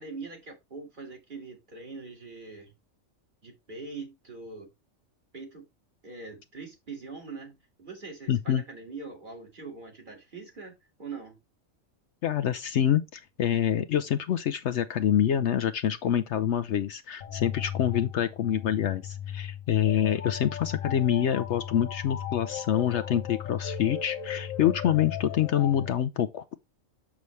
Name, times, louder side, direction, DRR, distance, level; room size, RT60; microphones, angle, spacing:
voice 1, 0.0-2.7 3.4-4.7 5.3-5.6 6.0-11.4, right 4 dB, 40° right, 2.1 m, -42 dB
voice 2, 8.3-8.6 12.2-26.6, left 10 dB, 65° left, 0.8 m, -26 dB
sound 1, 17.2-25.9, left 9 dB, 85° left, 1.3 m, -36 dB
6.9 x 6.2 x 3.2 m
omnidirectional pair, 1.4 m